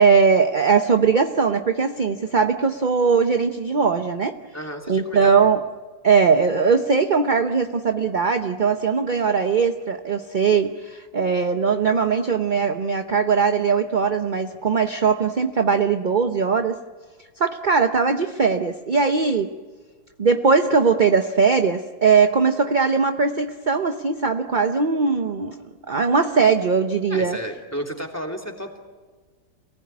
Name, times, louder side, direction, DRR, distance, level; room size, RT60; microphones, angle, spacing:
voice 1, 0.0-4.4 4.9-5.6 6.0-16.8 17.4-19.5 20.2-25.6 25.9-27.4, right 5 dB, 40° right, 6 dB, 0.7 m, -20 dB
voice 2, 4.5-5.5 27.1-28.8, equal, 10° left, 1 dB, 3.1 m, -32 dB
28.5 x 19.0 x 9.6 m, 1.4 s
omnidirectional pair, 2.0 m